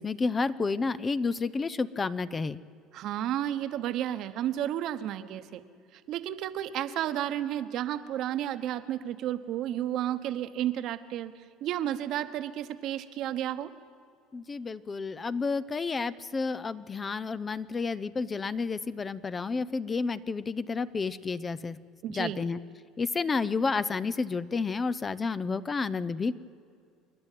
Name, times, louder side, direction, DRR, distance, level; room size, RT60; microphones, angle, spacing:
voice 1, 0.0-2.6 14.3-21.8 22.1-22.6 23.0-26.3, left 4 dB, 20° left, 16 dB, 0.5 m, -30 dB
voice 2, 2.9-5.6 5.9-13.7 22.0-22.5, right 11 dB, 55° right, 10 dB, 1.1 m, -32 dB
28.0 x 11.0 x 9.2 m, 2.3 s
supercardioid pair, 120°, 0 cm